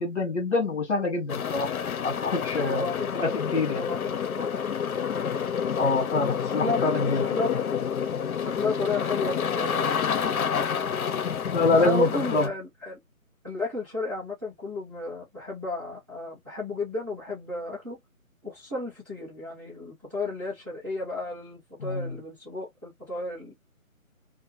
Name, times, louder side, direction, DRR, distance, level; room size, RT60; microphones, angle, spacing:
voice 1, 0.0-1.7 2.0-2.8 3.1-3.8 5.8-7.2 11.5-12.5 21.8-22.1, left 3 dB, 55° left, 1.3 m, -26 dB
sound 1, 1.3-12.5, left 7 dB, 80° left, 0.7 m, -29 dB
voice 2, 2.6-3.2 3.7-4.6 6.4-7.5 8.4-10.7 11.8-13.0 13.4-18.0 18.4-23.5, left 2 dB, 15° right, 0.8 m, -33 dB
2.8 x 2.2 x 2.9 m
hypercardioid pair, 165°, 42 cm